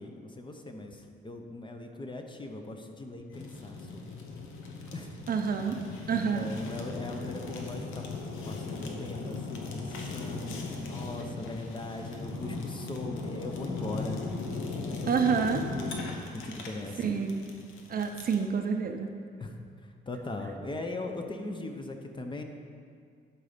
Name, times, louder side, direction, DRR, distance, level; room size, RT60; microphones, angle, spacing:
voice 1, 0.0-4.1 4.9-5.1 6.1-8.1 8.4-14.2 14.8-17.2 19.4-22.4, left 2 dB, 25° left, 4 dB, 0.8 m, -40 dB
Fire, 3.3-18.5, left 3 dB, 90° left, 1.0 m, -38 dB
voice 2, 5.3-5.8 6.1-6.5 15.1-15.6 17.0-17.4 17.9-19.1, right 6 dB, 45° right, 5 dB, 0.7 m, -28 dB
11.5 x 4.1 x 5.1 m, 2.1 s
cardioid pair, 90°, 20 cm